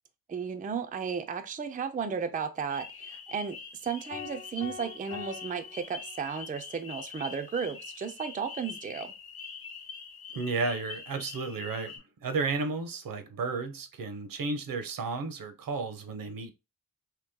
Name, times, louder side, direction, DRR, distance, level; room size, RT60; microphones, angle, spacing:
voice 1, 0.3-9.1, right 6 dB, 25° right, 0.4 m, -34 dB
sound 1, 2.7-12.0, left 6 dB, 85° left, 1.0 m, -44 dB
sound 2, 4.1-6.6, left 7 dB, 45° left, 0.7 m, -45 dB
voice 2, 10.3-11.9 12.2-16.5, right 4 dB, 65° right, 0.7 m, -33 dB
3.0 x 2.9 x 3.5 m
wide cardioid pair, 105°, 36 cm